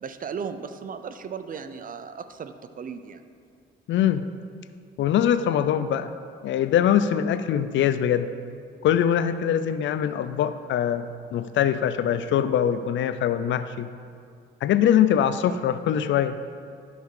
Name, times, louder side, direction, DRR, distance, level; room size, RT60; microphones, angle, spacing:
voice 1, 0.0-3.2, right 6 dB, 45° right, 10 dB, 0.6 m, -36 dB
voice 2, 3.9-4.3 5.0-6.1 6.4-8.3 8.8-11.1 11.3-13.9 14.6-16.4, left 9 dB, 70° left, 12 dB, 0.5 m, -22 dB
11.5 x 5.4 x 4.9 m, 2.2 s
cardioid pair, 90°, 20 cm